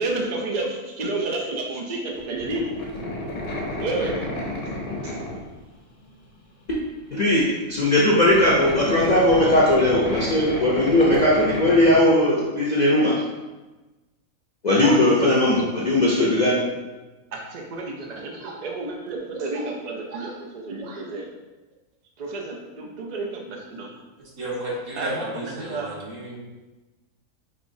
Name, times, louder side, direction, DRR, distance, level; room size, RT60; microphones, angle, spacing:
voice 1, 0.0-2.7 3.7-4.4 5.0-5.2 14.8-15.0 15.6-15.7 17.3-21.3 22.2-23.9 24.9-25.9, right 2 dB, 80° right, 0 dB, 0.3 m, -30 dB
sound 1, 2.1-5.6 6.1-6.2 7.4-7.5 7.8-12.0, left 1 dB, 80° left, 1.3 m, -31 dB
voice 2, 7.1-13.2 14.6-16.6, left 1 dB, 50° left, -6 dB, 0.5 m, -19 dB
voice 3, 24.4-26.4, right 1 dB, 65° right, -6 dB, 1.7 m, -32 dB
5.2 x 3.0 x 2.6 m, 1.1 s
omnidirectional pair, 1.5 m